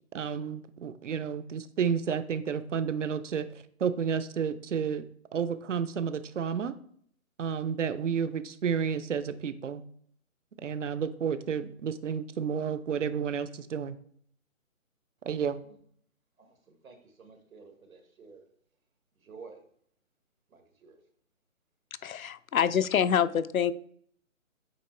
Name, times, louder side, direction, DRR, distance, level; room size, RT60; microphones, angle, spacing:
voice 1, 0.1-5.1 5.3-6.7 7.4-9.8 10.6-14.0 15.2-15.6, right 7 dB, 65° right, 13 dB, 0.6 m, -31 dB
voice 2, 16.4-18.4 19.2-19.6 20.5-21.0, right 4 dB, 85° right, 5 dB, 1.7 m, -52 dB
voice 3, 22.0-23.7, left 8 dB, 80° left, 14 dB, 0.6 m, -26 dB
8.6 x 2.9 x 4.4 m, 0.62 s
hypercardioid pair, 175°, 41 cm